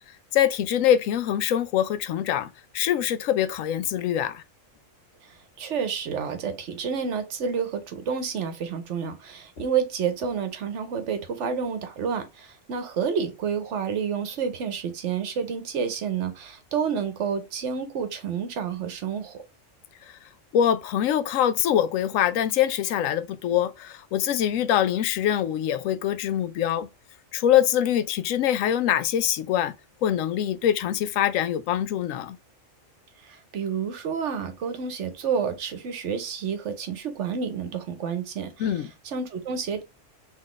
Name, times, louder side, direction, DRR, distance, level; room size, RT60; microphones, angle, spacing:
voice 1, 0.3-4.4 20.0-20.2 20.5-26.9 27.3-29.7 30.0-32.4 38.6-38.9, left 10 dB, 90° left, 1.0 m, -24 dB
voice 2, 5.2-19.4 33.2-38.8 39.0-39.8, right 6 dB, 70° right, 1.0 m, -29 dB
4.0 x 3.1 x 3.0 m
omnidirectional pair, 1.3 m